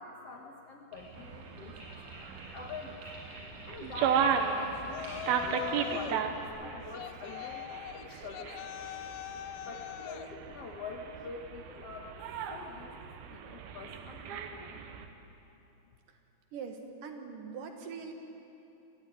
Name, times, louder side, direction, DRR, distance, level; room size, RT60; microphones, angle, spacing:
voice 1, 0.0-1.9 2.5-3.0 3.5-5.0 5.4-9.1 9.6-12.2 12.5-12.9 13.3-14.9 15.9-16.0, left 3 dB, 60° left, 1 dB, 1.7 m, -46 dB
sound 1, 0.9-6.5, equal, 30° right, 7.7 m, -49 dB
sound 2, 1.2-15.1, right 6 dB, 90° right, 3.1 m, -36 dB
Yell, 4.9-6.2 6.9-10.3, left 12 dB, 85° left, 2.6 m, -42 dB
voice 2, 16.5-18.1, right 5 dB, 65° right, 4 dB, 2.9 m, -42 dB
22.5 x 15.0 x 9.8 m, 2.9 s
omnidirectional pair, 4.3 m